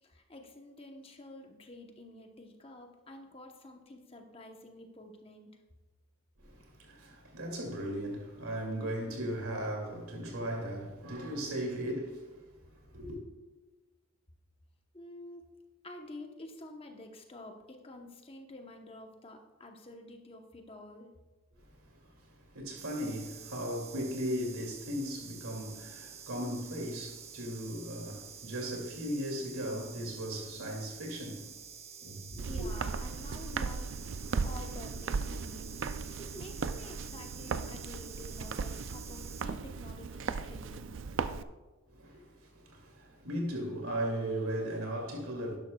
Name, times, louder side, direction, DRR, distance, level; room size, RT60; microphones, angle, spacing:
voice 1, 0.0-5.5 14.9-15.5 15.8-21.1 32.0-35.7 36.0-40.9, left 1 dB, 25° left, 0.9 m, -49 dB
voice 2, 6.4-12.4 12.7-13.2 21.7-31.6 32.0-32.5 41.9-45.6, equal, 85° right, 2.4 m, -37 dB
sound 1, 22.8-39.4, right 7 dB, 30° right, 0.7 m, -49 dB
Walk footsteps, 32.4-41.4, right 5 dB, 60° right, 0.4 m, -37 dB
12.0 x 10.5 x 2.3 m
head